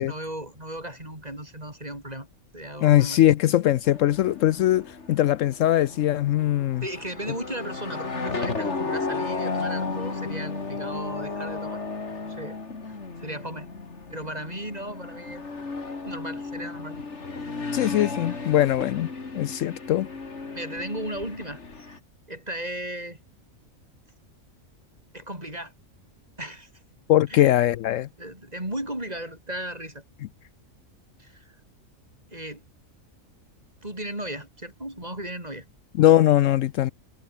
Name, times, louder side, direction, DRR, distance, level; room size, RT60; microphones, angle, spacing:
voice 1, 0.0-2.3 2.5-3.2 6.8-11.8 12.1-12.6 13.2-13.7 14.1-15.4 16.1-17.0 20.5-22.0 22.3-23.2 25.1-25.7 26.4-26.7 27.3-27.5 28.2-30.0 31.2-31.4 32.3-32.6 33.8-35.7, right 1 dB, 30° right, 6.9 m, -36 dB
voice 2, 2.8-6.8 17.7-20.1 27.1-28.1 36.0-36.9, left 13 dB, 75° left, 0.9 m, -21 dB
sound 1, 3.8-22.0, left 4 dB, 55° left, 2.9 m, -34 dB
omnidirectional pair, 1.4 m